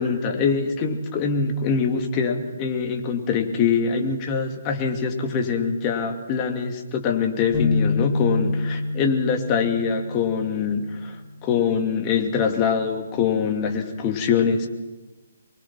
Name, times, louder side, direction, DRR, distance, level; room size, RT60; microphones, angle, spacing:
voice 1, 0.0-11.2 11.4-14.7, left 6 dB, 25° left, 3 dB, 2.5 m, -24 dB
sound 1, 7.5-11.1, left 3 dB, 10° right, 3.0 m, -26 dB
24.0 x 22.5 x 6.0 m, 1.2 s
figure-of-eight pair, 140°, 0 cm